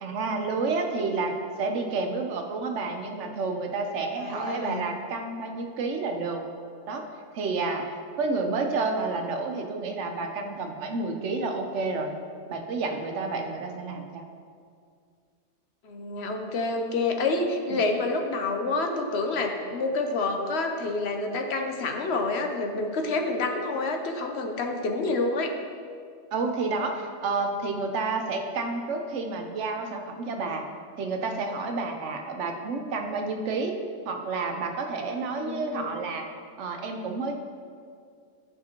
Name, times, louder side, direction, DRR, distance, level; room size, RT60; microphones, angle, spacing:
voice 1, 0.0-6.4 6.9-7.0 7.3-7.9 8.2-12.1 12.5-14.2 17.7-17.8 26.3-30.7 31.0-33.8 34.1-36.3 36.6-37.3, right 3 dB, 80° right, 4 dB, 1.1 m, -30 dB
voice 2, 4.2-4.8 15.8-25.5 35.4-35.9, left 3 dB, 65° left, 4 dB, 1.0 m, -28 dB
11.0 x 5.9 x 2.9 m, 2.2 s
omnidirectional pair, 1.2 m